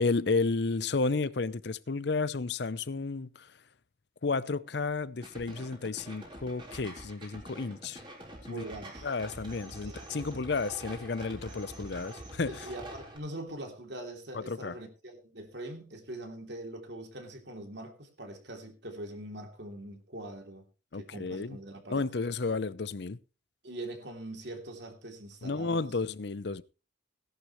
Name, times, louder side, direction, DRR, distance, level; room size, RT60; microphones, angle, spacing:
voice 1, 0.0-3.5 4.2-8.0 8.5-8.6 9.0-12.6 14.3-14.7 20.9-21.6 21.9-23.2 25.4-26.6, left 3 dB, 55° left, 0.6 m, -32 dB
sound 1, 5.2-13.2, right 1 dB, 25° right, 3.8 m, -46 dB
voice 2, 8.5-9.1 9.8-10.4 12.4-20.7 20.9-22.0 23.6-26.0, right 1 dB, 60° right, 2.9 m, -43 dB
17.0 x 11.5 x 3.1 m
head